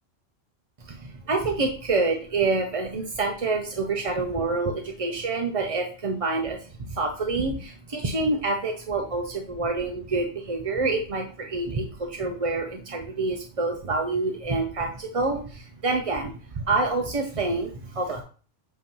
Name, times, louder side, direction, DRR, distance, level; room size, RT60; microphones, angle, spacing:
voice 1, 0.8-18.2, right 3 dB, 35° right, 3 dB, 0.6 m, -27 dB
8.5 x 2.8 x 5.4 m, 0.40 s
omnidirectional pair, 1.3 m